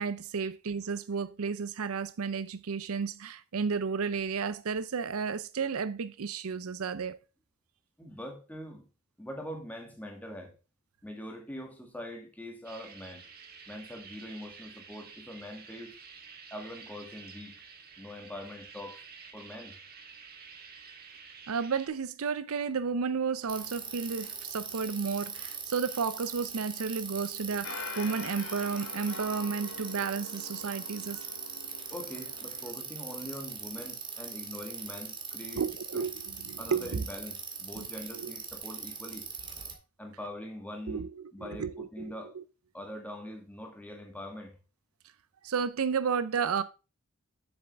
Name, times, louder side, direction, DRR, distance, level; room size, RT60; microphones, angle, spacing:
voice 1, 0.0-7.2 21.5-31.3 35.6-37.0 37.8-37.9 38.1-38.3 40.9-42.4 45.4-46.6, right 5 dB, 70° right, 0.5 m, -32 dB
voice 2, 8.0-8.9 9.2-10.5 11.0-13.3 13.7-16.0 16.5-17.6 18.0-19.0 19.3-19.8 31.9-35.6 35.9-36.0 36.6-39.3 40.0-41.1 41.3-42.3 42.7-44.6, left 1 dB, 5° left, 2.0 m, -43 dB
sound 1, 12.6-21.9, right 5 dB, 45° right, 1.4 m, -50 dB
Bicycle, 23.5-39.7, right 5 dB, 20° right, 1.7 m, -41 dB
sound 2, 27.6-32.7, left 4 dB, 60° left, 0.8 m, -44 dB
8.0 x 6.9 x 3.4 m
head